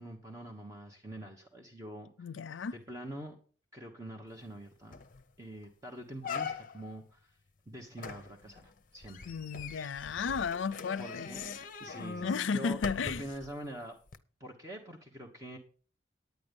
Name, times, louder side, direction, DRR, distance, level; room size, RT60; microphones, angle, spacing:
voice 1, 0.0-2.3 2.7-3.3 3.7-5.0 5.4-7.4 7.7-9.2 9.5-9.7 11.0-11.5 11.8-14.0 14.4-15.6, right 1 dB, 15° right, 1.2 m, -45 dB
voice 2, 2.2-2.8 9.3-11.6 12.2-13.3, left 5 dB, 85° left, 0.5 m, -34 dB
sound 1, 4.5-4.6 4.9-5.2 5.6-5.7 6.2-7.0 8.0-13.5 14.1-14.2, left 5 dB, 45° left, 0.7 m, -42 dB
9.7 x 9.3 x 5.3 m
head